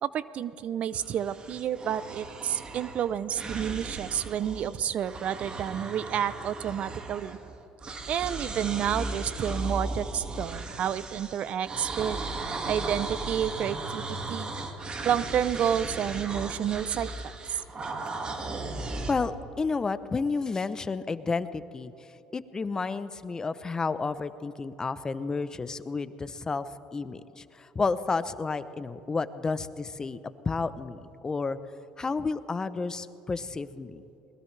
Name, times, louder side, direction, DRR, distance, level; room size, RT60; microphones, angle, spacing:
voice 1, 0.0-7.4 8.1-12.2 12.7-14.5 15.0-17.6, right 9 dB, 55° right, 16 dB, 0.6 m, -30 dB
sound 1, 0.9-4.7 5.0-7.5 7.8-19.1, right 2 dB, 35° right, 2.0 m, -36 dB
voice 2, 19.1-21.9 22.3-31.6 32.0-34.0, left 4 dB, 25° left, 14 dB, 0.7 m, -31 dB
21.0 x 20.5 x 3.3 m, 2.9 s
supercardioid pair, 85°, 3 cm